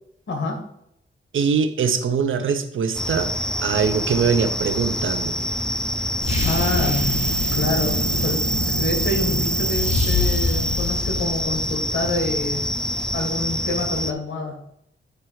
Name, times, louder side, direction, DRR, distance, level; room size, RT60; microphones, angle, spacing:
voice 1, 0.3-0.6 6.4-7.1 7.5-12.7 13.1-14.6, left 2 dB, 65° left, 3 dB, 1.8 m, -27 dB
voice 2, 1.3-3.3 3.6-5.3, right 6 dB, 85° right, 9 dB, 0.7 m, -22 dB
sound 1, 2.9-14.1, left 1 dB, 5° left, 0.4 m, -26 dB
sound 2, 6.2-11.6, equal, 30° left, 1.5 m, -24 dB
9.1 x 3.4 x 4.6 m, 0.75 s
wide cardioid pair, 90°, 20 cm